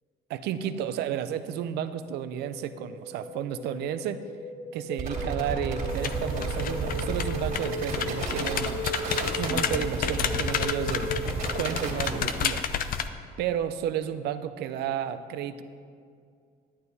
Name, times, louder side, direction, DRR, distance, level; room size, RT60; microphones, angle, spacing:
voice 1, 0.3-4.2 4.7-8.9 9.3-11.2 11.5-12.6 13.4-15.6, right 9 dB, 80° right, 11 dB, 0.6 m, -32 dB
sound 1, 2.0-12.0, left 1 dB, 40° left, 2.5 m, -37 dB
sound 2, 5.0-12.5, right 4 dB, 55° right, 2.4 m, -33 dB
sound 3, 5.9-13.1, left 8 dB, 55° left, 0.6 m, -31 dB
11.0 x 9.9 x 4.1 m, 2.3 s
cardioid pair, 110°, 17 cm